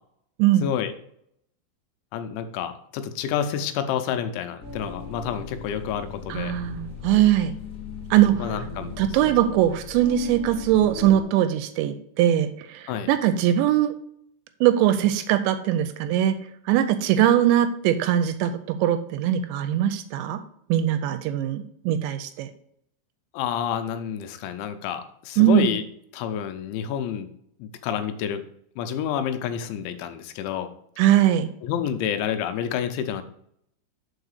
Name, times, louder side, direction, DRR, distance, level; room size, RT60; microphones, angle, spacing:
voice 1, 0.6-0.9 2.1-6.5 8.4-9.3 12.9-13.1 23.3-25.8 26.1-27.3 27.6-28.4 28.8-30.7 31.6-33.2, left 9 dB, 85° left, 8 dB, 3.1 m, -29 dB
sound 1, 4.6-11.2, left 4 dB, 20° left, 2.9 m, -38 dB
voice 2, 6.3-7.6 8.1-8.4 9.0-12.5 13.1-13.9 14.6-16.3 16.7-20.4 20.7-22.5 25.4-25.7 31.0-31.5, right 11 dB, 85° right, 10 dB, 2.7 m, -21 dB
6.3 x 4.7 x 6.6 m, 0.69 s
omnidirectional pair, 5.3 m